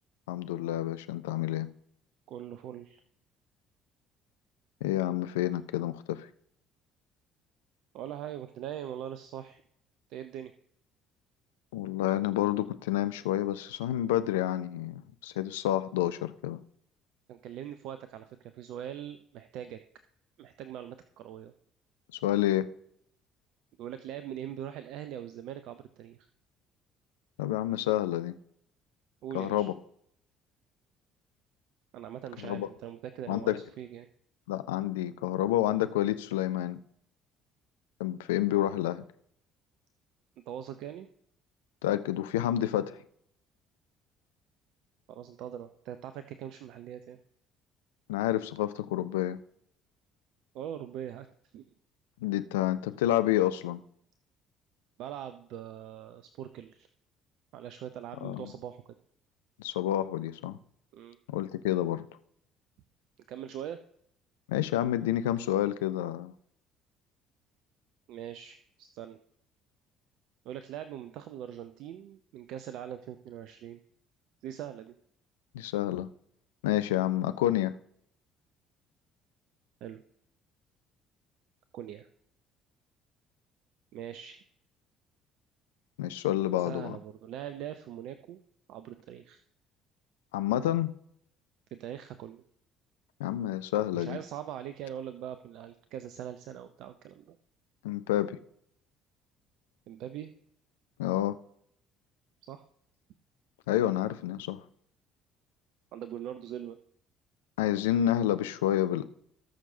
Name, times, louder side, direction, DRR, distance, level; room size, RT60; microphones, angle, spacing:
voice 1, 0.3-1.7 4.8-6.3 11.7-16.6 22.2-22.7 27.4-28.4 29.3-29.7 32.4-32.7 33.3-33.6 34.5-36.8 38.0-39.0 41.8-43.0 48.1-49.4 52.2-53.8 58.2-58.5 59.6-60.6 61.3-62.1 64.5-66.3 75.5-76.1 76.6-77.7 86.0-87.0 90.3-90.9 93.2-94.2 97.8-98.4 101.0-101.4 103.7-104.6 107.6-109.0, left 13 dB, 75° left, 12 dB, 0.5 m, -29 dB
voice 2, 2.3-3.0 7.9-9.6 10.1-10.5 17.3-19.8 20.4-21.5 23.8-26.3 29.2-29.7 31.9-34.1 40.5-41.1 45.1-47.2 50.5-51.7 55.0-56.9 57.5-58.9 60.9-61.2 63.3-63.8 68.1-69.2 70.4-73.8 74.4-74.9 79.8-80.0 81.7-82.1 83.9-84.4 86.6-88.4 88.7-89.4 91.7-92.4 93.9-97.4 99.9-100.3 102.4-102.6 105.9-106.8, right 10 dB, 60° right, 10 dB, 0.5 m, -42 dB
18.5 x 6.3 x 2.7 m, 0.68 s
figure-of-eight pair, 50°, 0 cm